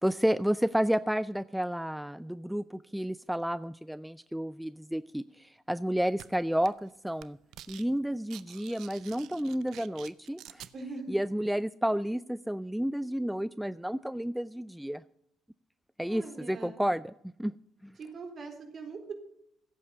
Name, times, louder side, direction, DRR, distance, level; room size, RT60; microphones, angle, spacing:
voice 1, 0.0-7.4 7.7-10.7 11.1-15.0 16.0-17.1 17.4-17.5 17.8-17.9, equal, 5° right, 16 dB, 0.4 m, -31 dB
sound 1, 6.2-6.3 6.6-6.9 7.2-7.9 8.1-10.7, right 12 dB, 65° right, 0.6 m, -48 dB
voice 2, 10.7-11.2 16.1-16.8 18.0-19.1, right 4 dB, 50° right, 5 dB, 3.8 m, -41 dB
15.5 x 8.5 x 6.8 m, 0.74 s
hypercardioid pair, 45°, 0 cm